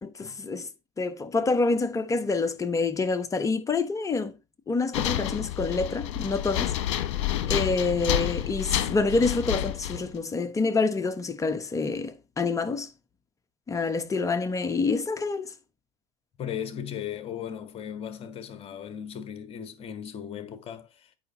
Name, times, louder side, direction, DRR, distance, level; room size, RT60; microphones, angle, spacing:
voice 1, 0.0-0.7 1.0-4.3 4.7-6.7 7.5-12.9 13.7-15.5, left 3 dB, 20° left, 1.2 m, -27 dB
sound 1, 4.9-10.1, left 12 dB, 70° left, 1.2 m, -29 dB
voice 2, 16.4-21.1, left 9 dB, 40° left, 1.7 m, -37 dB
8.6 x 5.4 x 4.2 m
hypercardioid pair, 85°, 15 cm